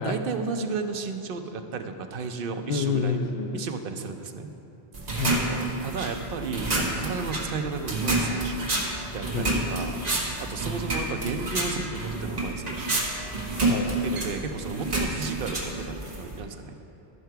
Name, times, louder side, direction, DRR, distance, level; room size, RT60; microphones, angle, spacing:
voice 1, 0.0-3.2 3.5-4.5 5.0-5.3 5.8-8.7 9.1-10.0 10.4-13.0 14.0-16.8, right 4 dB, 60° right, 6 dB, 0.8 m, -33 dB
voice 2, 2.7-3.6 5.2-5.6 9.3-9.9 13.7-14.1, left 5 dB, 70° left, 6 dB, 0.9 m, -29 dB
sound 1, 4.9-16.4, right 2 dB, 40° right, 1.3 m, -29 dB
12.5 x 5.7 x 4.6 m, 2.9 s
omnidirectional pair, 1.1 m